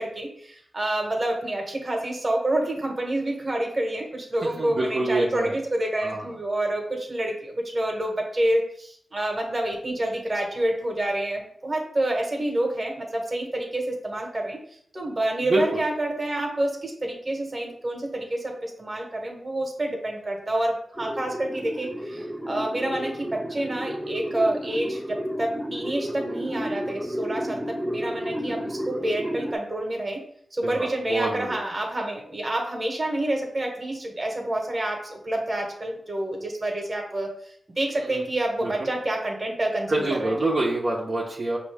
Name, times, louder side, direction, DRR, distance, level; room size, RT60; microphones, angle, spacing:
voice 1, 0.0-14.6 14.9-30.2 30.5-37.3 37.7-40.3, right 1 dB, 35° right, 2 dB, 1.3 m, -28 dB
voice 2, 4.4-5.5 6.0-6.3 15.4-15.8 30.6-31.6 38.0-38.2 38.6-38.9 39.9-41.6, right 2 dB, 60° right, -5 dB, 0.9 m, -26 dB
sound 1, 21.0-29.6, equal, 10° right, 0.5 m, -32 dB
5.2 x 2.8 x 3.5 m, 0.64 s
cardioid pair, 55°, 0 cm